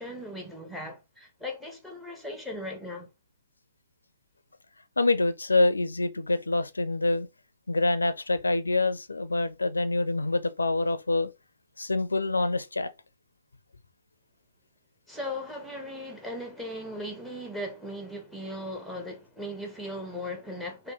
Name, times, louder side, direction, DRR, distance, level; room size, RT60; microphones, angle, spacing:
voice 1, 0.0-3.1 15.1-20.9, left 1 dB, ahead, 0.8 m, -38 dB
voice 2, 5.0-7.3 7.7-11.3 11.8-12.9, left 2 dB, 80° left, 0.4 m, -26 dB
3.2 x 2.2 x 2.9 m
figure-of-eight pair, 130°, 0 cm